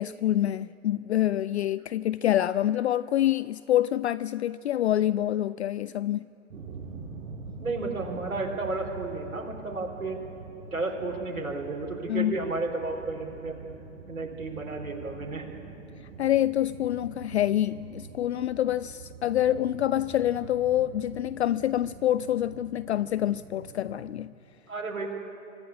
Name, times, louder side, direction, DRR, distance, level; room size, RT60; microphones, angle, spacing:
voice 1, 0.0-6.2 12.1-12.4 16.2-24.3, left 12 dB, 55° left, 0.5 m, -26 dB
sound 1, 6.5-24.2, right 4 dB, 45° right, 6.4 m, -45 dB
voice 2, 7.6-10.2 10.7-13.6 14.1-15.4 24.7-25.1, right 3 dB, 85° right, 4.0 m, -32 dB
25.0 x 14.5 x 9.9 m
hypercardioid pair, 125°, 42 cm